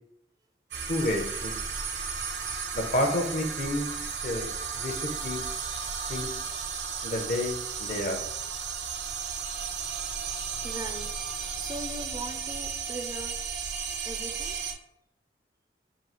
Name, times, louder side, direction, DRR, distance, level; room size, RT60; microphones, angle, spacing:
sound 1, 0.7-14.7, right 6 dB, 70° right, 0.6 m, -34 dB
voice 1, 0.9-1.6 2.7-5.4 6.1-6.3 7.0-8.2, left 1 dB, 45° left, 3 dB, 0.6 m, -30 dB
voice 2, 10.6-11.1 11.6-13.4 14.1-14.5, right 2 dB, 20° right, 5 dB, 0.3 m, -39 dB
3.7 x 2.3 x 4.3 m, 0.80 s
head